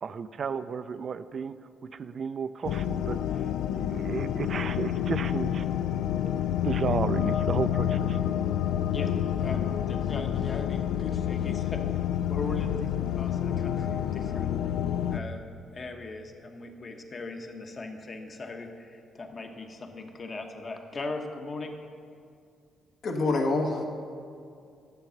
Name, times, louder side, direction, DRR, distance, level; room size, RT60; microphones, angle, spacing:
voice 1, 0.0-1.5 1.8-5.7 6.6-8.2, right 6 dB, 50° right, 12 dB, 0.4 m, -33 dB
sound 1, 2.6-15.2, left 10 dB, 80° left, 0.3 m, -28 dB
voice 2, 8.9-11.8 12.3-14.5 15.1-15.4 15.7-21.8, left 3 dB, 40° left, 4 dB, 1.1 m, -39 dB
voice 3, 23.0-23.9, left 2 dB, 65° left, 2 dB, 1.3 m, -26 dB
10.5 x 7.0 x 5.8 m, 2.4 s
cardioid pair, 90°, 0 cm